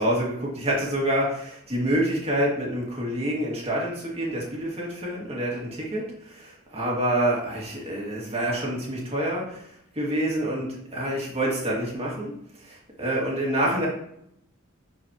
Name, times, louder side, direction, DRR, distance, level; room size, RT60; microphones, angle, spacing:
voice 1, 0.0-9.6 10.0-12.3 12.6-13.9, right 1 dB, 30° right, -3 dB, 2.2 m, -27 dB
10.5 x 4.6 x 3.0 m, 0.73 s
head